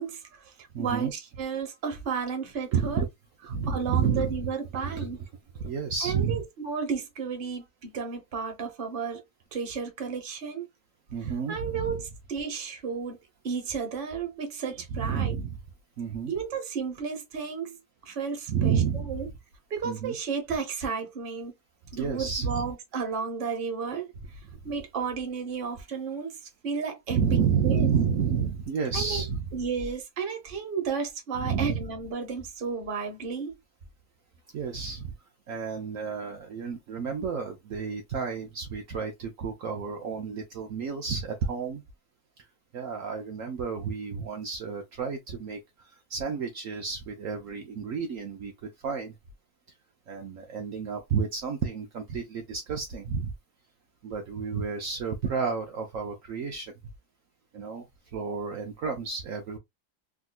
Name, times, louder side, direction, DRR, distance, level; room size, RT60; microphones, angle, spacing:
voice 1, 0.0-3.0 3.7-5.2 6.0-9.2 9.5-10.7 11.2-13.2 13.4-15.4 16.3-19.3 19.7-21.5 21.9-24.1 24.6-27.4 27.6-27.9 28.9-29.2 29.5-33.6, right 5 dB, 40° right, 1.0 m, -33 dB
voice 2, 0.7-1.1 2.7-3.1 3.5-4.4 4.8-5.1 5.5-6.4 11.1-12.0 14.9-15.6 16.0-16.3 18.5-19.1 19.8-20.1 21.9-22.7 27.1-29.6 31.4-31.8 34.5-35.1 35.5-41.8 42.7-45.6 46.1-48.5 48.8-49.1 50.1-53.3 54.0-56.7 57.5-57.9 58.1-59.6, right 6 dB, 65° right, 1.0 m, -30 dB
3.6 x 2.7 x 2.3 m
omnidirectional pair, 1.6 m